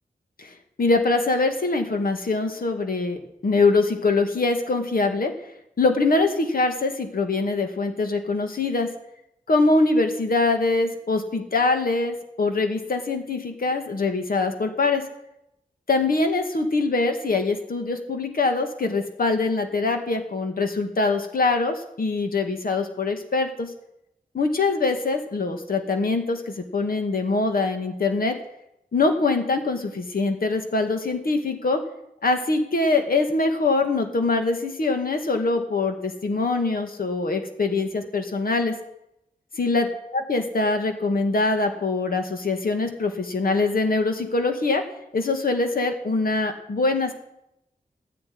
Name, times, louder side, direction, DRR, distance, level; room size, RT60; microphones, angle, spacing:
voice 1, 0.8-5.3 5.8-8.9 9.5-15.1 15.9-23.7 24.3-28.4 28.9-31.8 32.2-38.8 39.6-39.9 40.1-44.8 45.1-47.1, left 3 dB, 70° left, 5 dB, 2.3 m, -23 dB
14.5 x 10.0 x 9.6 m, 0.81 s
wide cardioid pair, 110°, 16 cm